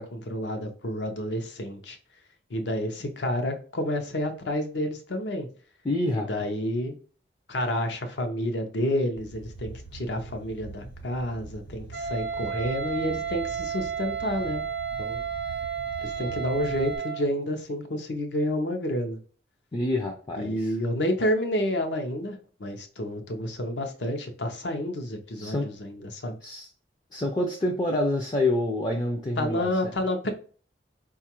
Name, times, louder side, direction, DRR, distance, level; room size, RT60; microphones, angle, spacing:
voice 1, 0.0-2.0 2.5-5.5 6.1-6.9 7.5-14.6 15.0-15.2 16.0-19.2 20.4-26.4 29.4-30.3, left 1 dB, 70° left, 6 dB, 0.7 m, -29 dB
voice 2, 5.8-6.5 19.7-20.8 25.3-25.7 26.4-26.7 27.1-29.9, left 1 dB, 20° left, 1 dB, 0.4 m, -27 dB
sound 1, 9.2-17.0, right 3 dB, 50° left, 1.0 m, -44 dB
Wind instrument woodwind instrument, 11.9-17.3, right 7 dB, 60° right, 0.5 m, -32 dB
4.6 x 2.4 x 2.9 m, 0.42 s
head